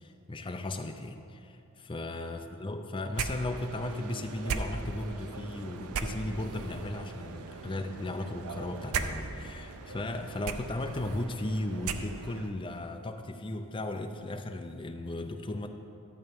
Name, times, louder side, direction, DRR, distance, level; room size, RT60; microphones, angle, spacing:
voice 1, 0.0-15.7, left 1 dB, 20° left, 6 dB, 0.4 m, -36 dB
sound 1, 3.1-12.5, right 4 dB, 80° right, 0.5 m, -38 dB
12.0 x 7.7 x 3.6 m, 2.8 s
head